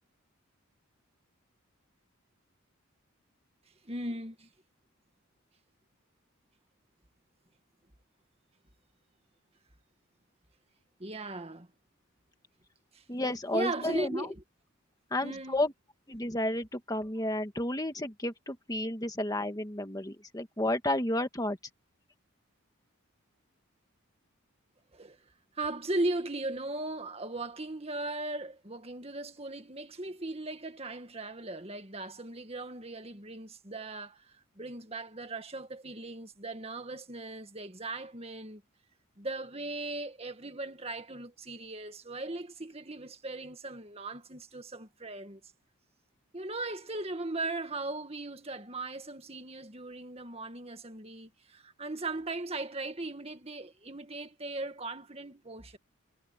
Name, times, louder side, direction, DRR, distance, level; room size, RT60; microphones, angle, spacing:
voice 1, 3.9-4.5 11.0-11.7 12.9-13.0 13.5-14.4 15.2-15.6 24.9-25.2 25.5-38.6 39.2-45.4 46.3-55.8, right 2 dB, 30° right, 2.0 m, -38 dB
voice 2, 13.1-14.2 15.1-15.7 16.1-21.6, left 1 dB, 15° left, 1.7 m, -32 dB
head